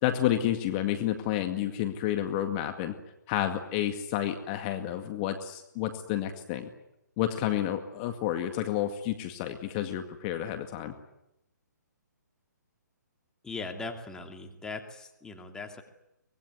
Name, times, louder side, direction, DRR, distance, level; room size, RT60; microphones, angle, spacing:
voice 1, 0.0-2.9 3.3-6.7 7.2-10.9, left 11 dB, 30° left, 6 dB, 2.1 m, -30 dB
voice 2, 13.4-15.8, left 3 dB, 5° left, 3 dB, 2.7 m, -39 dB
24.5 x 20.5 x 9.5 m, 0.87 s
figure-of-eight pair, 140°, 10 cm